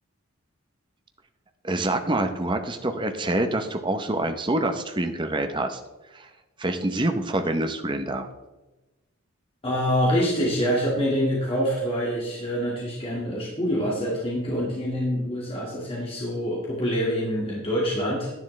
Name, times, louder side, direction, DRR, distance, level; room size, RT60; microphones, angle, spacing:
voice 1, 1.6-5.8 6.1-6.3 6.6-8.3, right 1 dB, 20° right, 6 dB, 0.7 m, -26 dB
voice 2, 9.6-18.3, equal, 25° left, -5 dB, 1.9 m, -26 dB
10.5 x 10.0 x 3.2 m, 1.1 s
head